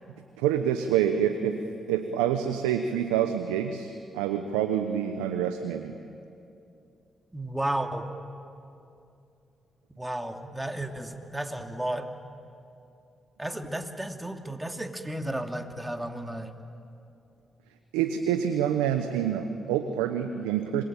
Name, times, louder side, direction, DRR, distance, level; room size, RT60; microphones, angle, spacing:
voice 1, 0.4-1.6 1.9-6.0 17.9-20.8, right 9 dB, 90° right, 7 dB, 1.0 m, -27 dB
voice 2, 7.3-8.1 10.0-12.1 13.4-16.5, right 1 dB, 10° right, 5 dB, 2.7 m, -33 dB
26.5 x 22.5 x 8.9 m, 2.6 s
hypercardioid pair, 45°, 0 cm